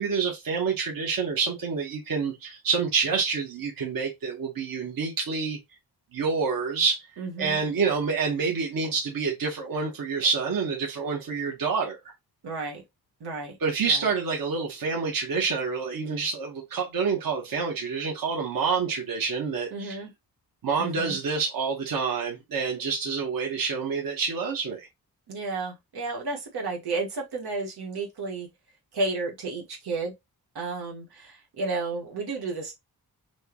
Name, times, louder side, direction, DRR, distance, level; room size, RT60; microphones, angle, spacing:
voice 1, 0.0-5.6 6.1-7.1 7.4-12.0 13.6-20.0 20.6-24.9, right 5 dB, 60° right, 1.4 m, -27 dB
voice 2, 7.2-7.6 12.4-12.8 13.2-13.6 13.9-14.0 19.7-20.1 20.8-21.2 25.3-28.5 28.9-30.1 30.6-32.7, right 3 dB, 90° right, 1.8 m, -32 dB
6.2 x 2.4 x 3.0 m
wide cardioid pair, 155°, 38 cm